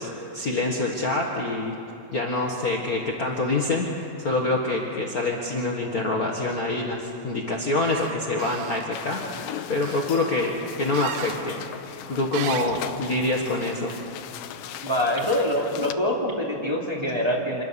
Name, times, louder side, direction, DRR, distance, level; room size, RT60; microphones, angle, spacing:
voice 1, 0.0-1.7 2.1-9.2 9.7-10.5 10.8-13.9, left 2 dB, 55° left, -1 dB, 0.9 m, -26 dB
sound 1, 7.8-8.1 8.4-8.9 9.8-10.1 10.9-11.4 12.3-12.8, right 10 dB, 85° right, 2.8 m, -36 dB
sound 2, 8.9-15.9, left 11 dB, 75° left, 2.3 m, -38 dB
voice 2, 14.8-17.6, left 1 dB, 10° right, -4 dB, 2.6 m, -25 dB
26.0 x 21.0 x 7.0 m, 2.7 s
omnidirectional pair, 4.2 m